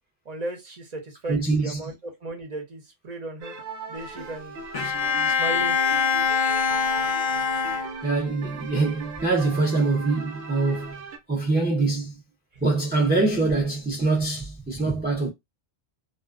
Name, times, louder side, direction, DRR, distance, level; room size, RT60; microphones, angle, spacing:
voice 1, 0.3-3.6 3.9-4.9 5.1-5.8, right 2 dB, 45° right, 0.7 m, -36 dB
voice 2, 1.3-1.8 4.8-4.9 8.0-11.0 11.3-12.1 12.6-15.3, right 3 dB, 15° right, 0.3 m, -24 dB
sound 1, 3.4-11.2, right 4 dB, 80° right, 1.0 m, -39 dB
Bowed string instrument, 4.7-8.4, left 6 dB, 50° left, 0.4 m, -24 dB
2.4 x 2.1 x 2.4 m
omnidirectional pair, 1.1 m